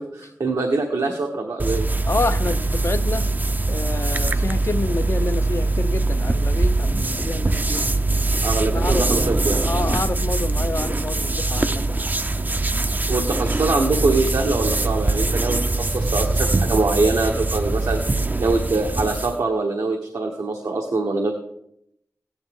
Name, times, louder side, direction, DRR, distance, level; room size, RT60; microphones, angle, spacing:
voice 1, 0.0-1.8 8.4-9.6 13.1-18.0 18.4-21.3, right 3 dB, 85° right, 1 dB, 1.2 m, -23 dB
sound 1, 1.6-19.4, right 2 dB, 30° right, 0.5 m, -22 dB
voice 2, 2.1-3.3 3.7-7.9 8.7-9.1 9.6-12.0, left 3 dB, 45° left, 12 dB, 0.6 m, -28 dB
16.0 x 10.5 x 3.7 m, 0.76 s
cardioid pair, 50°, 6 cm